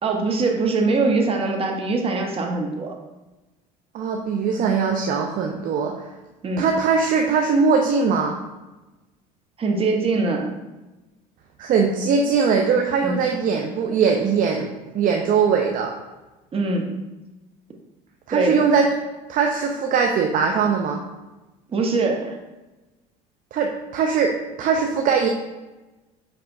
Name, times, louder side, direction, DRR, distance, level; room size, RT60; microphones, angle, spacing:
voice 1, 0.0-3.0 6.4-6.7 9.6-10.5 13.0-13.3 16.5-16.9 18.3-18.6 21.7-22.4, right 3 dB, 30° right, 2 dB, 0.9 m, -22 dB
voice 2, 3.9-5.9 6.6-8.4 11.6-14.7 14.9-15.9 18.3-18.9 19.3-21.0 23.5-24.3 24.6-25.3, right 5 dB, 45° right, 2 dB, 0.5 m, -20 dB
5.7 x 3.3 x 2.6 m, 1.1 s
hypercardioid pair, 75°, 19 cm